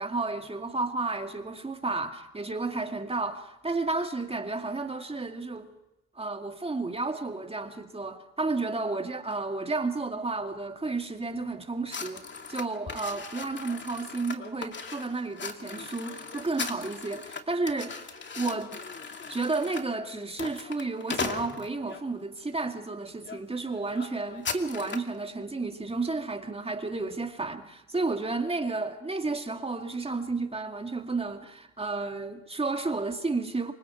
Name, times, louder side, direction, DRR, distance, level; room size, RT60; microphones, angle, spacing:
voice 1, 0.0-5.7 6.2-18.7 19.3-33.7, right 3 dB, 15° right, 2.4 m, -32 dB
sound 1, 11.9-22.0 22.6-22.9 23.2-23.4 23.6-25.1, left 5 dB, 30° left, 2.6 m, -38 dB
28.0 x 24.0 x 4.6 m
hypercardioid pair, 75°, 37 cm